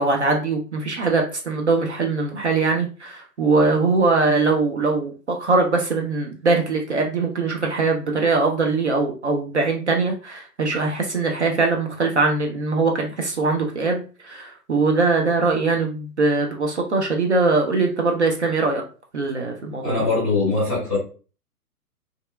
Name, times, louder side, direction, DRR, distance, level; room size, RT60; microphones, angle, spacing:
voice 1, 0.0-18.8 19.1-20.0, right 3 dB, 50° right, 2 dB, 0.4 m, -21 dB
voice 2, 19.8-21.0, left 3 dB, 5° left, -11 dB, 0.5 m, -21 dB
2.6 x 2.3 x 2.2 m, 0.37 s
figure-of-eight pair, 125°, 47 cm